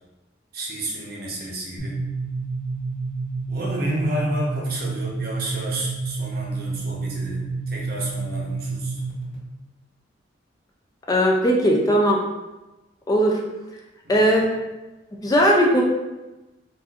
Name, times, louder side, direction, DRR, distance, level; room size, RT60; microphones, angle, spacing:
voice 1, 0.5-2.0 3.5-9.0 14.0-14.2, right 1 dB, 55° right, -2 dB, 0.7 m, -31 dB
sound 1, 1.8-9.3, right 3 dB, 90° left, 1.3 m, -29 dB
voice 2, 11.1-12.2 13.1-13.4 14.1-14.5 15.2-15.8, equal, 20° left, -1 dB, 0.3 m, -18 dB
4.0 x 2.4 x 2.4 m, 1.1 s
head